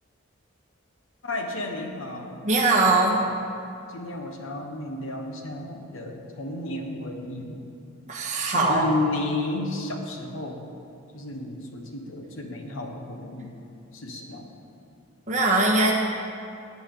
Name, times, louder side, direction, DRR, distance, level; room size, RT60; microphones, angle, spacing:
voice 1, 1.2-2.4 3.9-7.6 8.5-10.6 11.1-13.5 13.9-14.5, left 2 dB, 75° left, 3 dB, 1.3 m, -32 dB
voice 2, 2.4-3.2 8.1-8.8 15.3-15.9, right 2 dB, 35° right, -2 dB, 1.7 m, -21 dB
16.5 x 9.5 x 3.9 m, 2.6 s
head